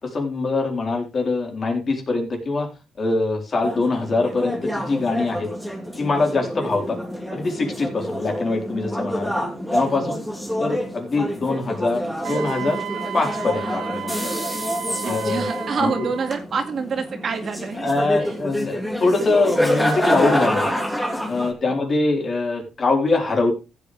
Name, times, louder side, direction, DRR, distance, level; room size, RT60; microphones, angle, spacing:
voice 1, 0.0-2.7 3.0-5.5 6.0-7.0 7.3-9.3 9.7-10.2 10.6-12.8 13.1-14.3 15.0-15.4 15.8-16.1 17.8-20.7 21.3-23.5, left 3 dB, 40° left, 2 dB, 4.1 m, -23 dB
sound 1, 3.6-21.5, equal, ahead, 3.1 m, -27 dB
Wind instrument woodwind instrument, 12.2-16.4, right 11 dB, 75° right, 0.6 m, -33 dB
voice 2, 15.0-17.8 18.2-18.4, right 5 dB, 50° right, 6 dB, 2.2 m, -27 dB
15.0 x 8.6 x 3.3 m, 0.28 s
cardioid pair, 90°, 0 cm